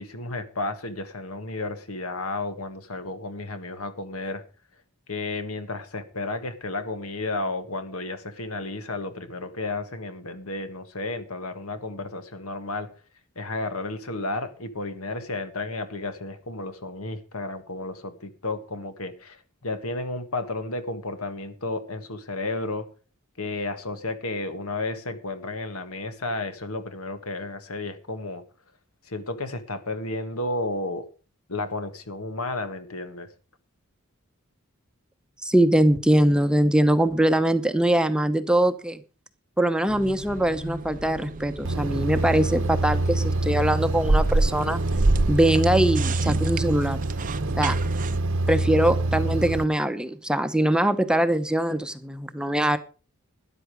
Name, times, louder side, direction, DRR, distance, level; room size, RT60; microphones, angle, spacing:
voice 1, 0.0-4.4 5.1-12.9 13.4-22.9 23.4-28.4 29.1-31.1 31.5-33.3, left 2 dB, 80° left, 1.7 m, -32 dB
voice 2, 35.4-39.0 39.6-44.8 45.3-47.0 47.6-47.8 48.5-52.8, right 1 dB, 5° right, 0.8 m, -22 dB
sound 1, 39.9-48.2, right 2 dB, 40° right, 0.6 m, -29 dB
sound 2, 41.6-49.6, right 2 dB, 60° right, 0.9 m, -26 dB
13.0 x 10.5 x 5.0 m
head